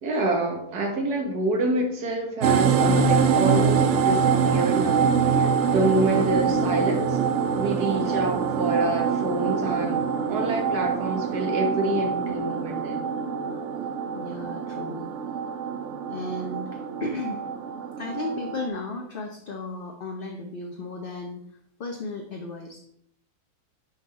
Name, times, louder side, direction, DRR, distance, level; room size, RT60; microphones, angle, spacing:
voice 1, 0.0-7.2 7.5-10.0 10.3-13.1, right 2 dB, 75° right, 3 dB, 1.9 m, -27 dB
sound 1, 2.4-18.7, right 6 dB, 60° right, 0.9 m, -24 dB
voice 2, 14.1-15.1 16.1-17.4 18.0-21.4 21.8-22.8, left 2 dB, 50° left, 2 dB, 0.7 m, -34 dB
10.5 x 4.0 x 4.2 m, 0.72 s
omnidirectional pair, 1.7 m